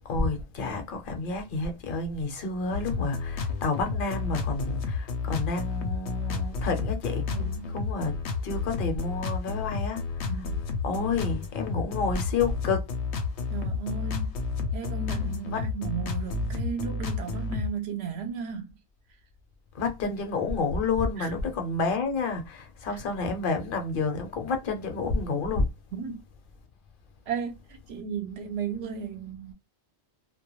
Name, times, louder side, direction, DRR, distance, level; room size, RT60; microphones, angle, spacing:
voice 1, 0.0-7.3 7.7-10.1 10.3-10.5 10.8-12.9 15.5-15.7 19.7-25.7, left 4 dB, 55° left, 0.8 m, -30 dB
sound 1, 2.7-17.7, left 4 dB, 85° left, 0.9 m, -31 dB
voice 2, 7.3-7.8 10.3-10.6 13.5-14.4 14.7-18.8 21.2-21.3 22.9-23.0 25.9-26.2 27.3-29.5, right 6 dB, 70° right, 0.8 m, -35 dB
2.2 x 2.2 x 3.0 m
omnidirectional pair, 1.1 m